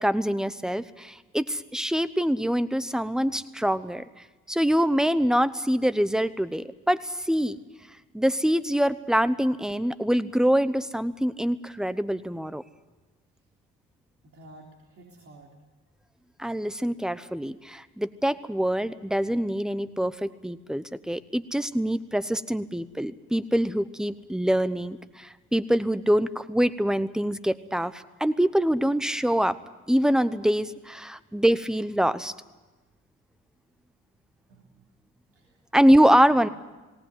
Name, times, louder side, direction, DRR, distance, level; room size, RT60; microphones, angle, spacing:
voice 1, 0.0-4.0 4.5-7.6 8.1-12.6 16.4-29.6 29.9-32.3 35.7-36.5, equal, ahead, 14 dB, 0.9 m, -24 dB
voice 2, 14.2-15.5 34.5-34.7 35.3-35.6 36.2-36.5, right 2 dB, 45° right, -1 dB, 3.7 m, -50 dB
19.0 x 18.5 x 9.3 m, 1.2 s
cardioid pair, 90°, 30 cm